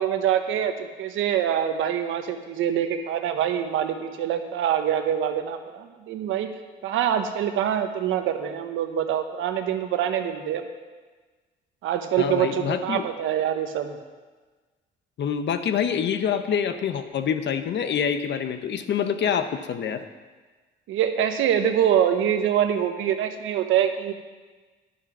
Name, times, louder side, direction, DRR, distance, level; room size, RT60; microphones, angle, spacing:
voice 1, 0.0-6.5 6.8-10.6 11.8-14.0 20.9-24.1, right 9 dB, 90° right, 7 dB, 1.0 m, -25 dB
voice 2, 12.2-13.1 15.2-20.0, left 7 dB, 65° left, 9 dB, 1.0 m, -26 dB
10.5 x 9.6 x 6.1 m, 1.4 s
cardioid pair, 90°, 20 cm